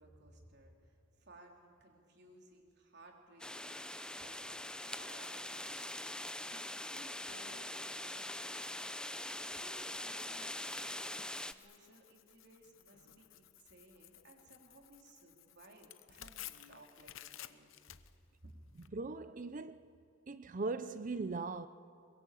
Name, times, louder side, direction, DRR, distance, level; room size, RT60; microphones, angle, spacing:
voice 1, 0.0-8.9 9.5-17.7 18.4-18.6, right 1 dB, 55° right, 3.5 m, -60 dB
sound 1, 3.4-11.5, left 1 dB, 5° left, 0.6 m, -43 dB
Tearing, 10.7-18.9, left 12 dB, 75° left, 0.8 m, -55 dB
voice 2, 18.9-19.9 20.3-21.7, right 3 dB, 40° right, 0.6 m, -39 dB
22.5 x 22.0 x 8.4 m
head